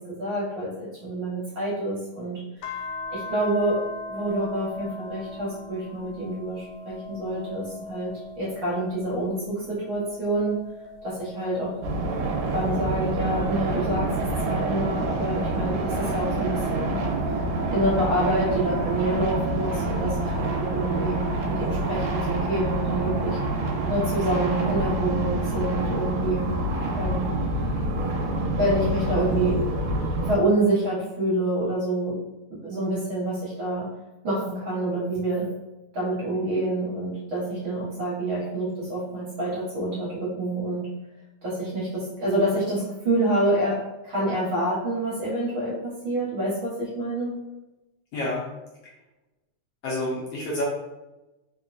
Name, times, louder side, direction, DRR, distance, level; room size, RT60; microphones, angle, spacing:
voice 1, 0.0-2.8 3.1-3.8 4.1-8.1 8.4-10.6 11.0-11.7 12.5-14.1 14.5-17.0 17.7-23.4 23.9-26.5 26.9-27.3 28.6-29.6 30.2-32.2 32.6-33.9 34.2-35.5 35.9-40.9 41.4-47.4, right 1 dB, 55° right, -8 dB, 1.6 m, -27 dB
sound 1, 2.6-9.3 9.8-12.7 13.3-16.1 16.8-19.3 20.6-21.7, left 3 dB, 90° left, 2.0 m, -42 dB
sound 2, 11.8-30.4, right 2 dB, 75° right, 1.7 m, -27 dB
voice 2, 48.1-48.5 49.8-50.6, left 1 dB, 70° left, -6 dB, 1.7 m, -28 dB
4.4 x 2.9 x 2.5 m, 1.0 s
omnidirectional pair, 3.3 m